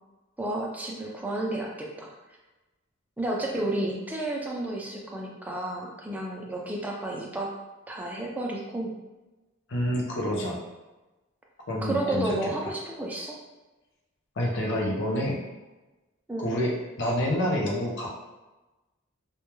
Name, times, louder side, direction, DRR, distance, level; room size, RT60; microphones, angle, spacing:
voice 1, 0.4-2.1 3.2-7.5 7.9-8.9 11.8-13.4 16.3-16.5, right 1 dB, 10° right, -2 dB, 0.3 m, -31 dB
voice 2, 9.7-10.6 11.7-12.5 14.4-15.4 16.4-18.1, equal, 60° left, -1 dB, 0.5 m, -28 dB
2.2 x 2.1 x 3.0 m, 1.1 s
head